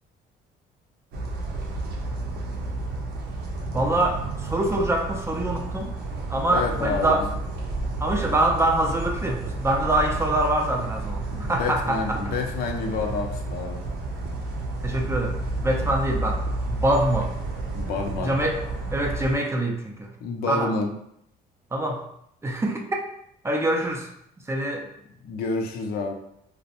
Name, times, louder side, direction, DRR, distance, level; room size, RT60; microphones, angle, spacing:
sound 1, 1.1-19.4, right 2 dB, 75° right, 0.6 m, -31 dB
voice 1, 3.7-5.9 6.3-7.3 8.0-12.2 14.8-17.3 18.2-18.6 18.9-20.1 20.5-20.7 21.7-22.0 22.4-22.8 23.4-24.1 24.5-24.9, right 1 dB, 15° right, 1 dB, 0.4 m, -25 dB
voice 2, 6.5-7.3 11.3-13.8 17.7-18.3 20.2-20.9 25.2-26.1, left 4 dB, 65° left, 3 dB, 0.4 m, -29 dB
2.5 x 2.0 x 2.8 m, 0.73 s
cardioid pair, 110°, 17 cm